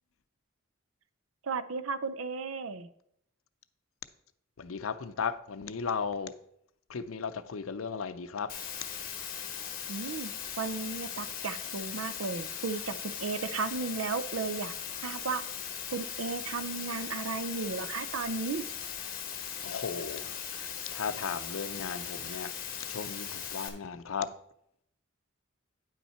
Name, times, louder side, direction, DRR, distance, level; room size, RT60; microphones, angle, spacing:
voice 1, 1.4-2.9 9.9-10.3 10.6-13.0 13.2-14.7 15.0-15.4 15.9-18.7, right 4 dB, 85° right, 0.6 m, -34 dB
voice 2, 4.6-6.3 6.9-8.5 19.6-22.5 22.9-24.3, left 6 dB, 80° left, 0.6 m, -36 dB
Water, 8.5-23.7, left 8 dB, 45° left, 1.2 m, -39 dB
9.3 x 5.5 x 4.4 m
head